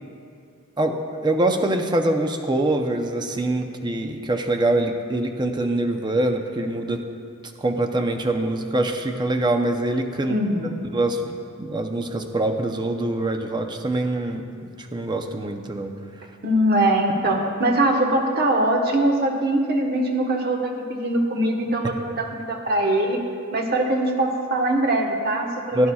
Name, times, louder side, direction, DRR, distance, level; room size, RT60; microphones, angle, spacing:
voice 1, 1.2-7.0 7.6-10.3 10.9-15.9 25.7-25.9, right 1 dB, 20° right, 4 dB, 0.6 m, -24 dB
voice 2, 10.3-10.8 16.4-23.2 23.5-25.9, right 1 dB, 50° right, 1 dB, 1.2 m, -22 dB
16.5 x 10.0 x 2.3 m, 2.4 s
head